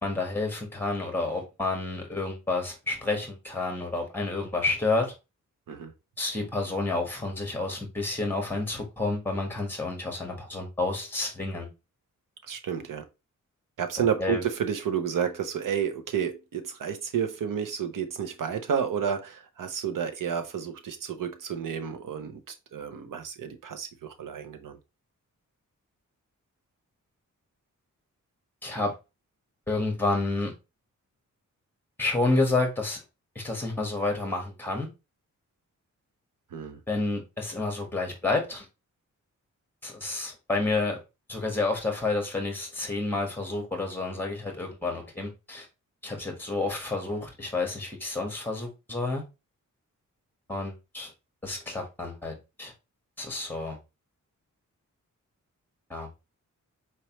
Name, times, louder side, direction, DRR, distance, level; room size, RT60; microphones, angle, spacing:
voice 1, 0.0-5.1 6.2-11.7 14.2-14.4 28.6-29.0 29.7-30.5 32.0-33.0 33.3-34.9 36.9-38.7 39.8-41.0 41.3-45.7 46.0-49.2 50.5-51.1 51.4-52.7 53.2-53.8 55.9-56.1, left 2 dB, 5° left, 1.4 m, -29 dB
voice 2, 12.5-13.1 13.8-24.8 36.5-36.8, right 7 dB, 85° right, 0.8 m, -31 dB
4.4 x 3.2 x 2.9 m
wide cardioid pair, 160°, 31 cm